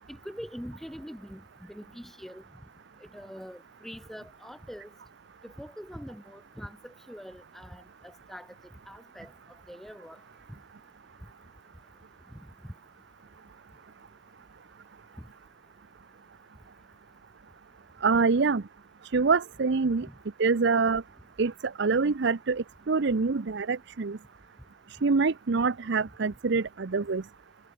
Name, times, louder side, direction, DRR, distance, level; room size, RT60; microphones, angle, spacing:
voice 1, 0.1-1.4 1.7-2.4 3.0-4.9 5.6-8.5 8.9-9.3 9.7-10.2 12.3-12.7 20.0-20.1, equal, ahead, 3.9 m, -43 dB
voice 2, 18.0-18.6 19.1-20.1 20.4-21.0 21.4-24.2 24.9-27.2, right 4 dB, 60° right, 0.6 m, -25 dB
head